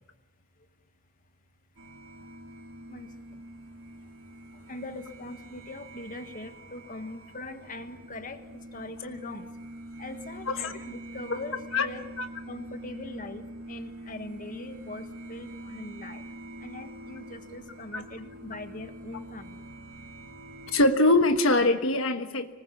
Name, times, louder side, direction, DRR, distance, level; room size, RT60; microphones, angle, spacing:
sound 1, 1.8-20.9, right 1 dB, 70° right, 2.7 m, -45 dB
voice 1, 4.7-8.4 8.7-9.5 10.0-12.0 12.5-13.4 13.7-16.2 16.6-19.6, left 2 dB, 40° left, 1.6 m, -41 dB
voice 2, 10.5-10.8 11.7-11.9 12.2-12.3 17.9-18.0 20.7-22.5, left 2 dB, 70° left, 1.3 m, -23 dB
26.0 x 20.0 x 7.1 m
head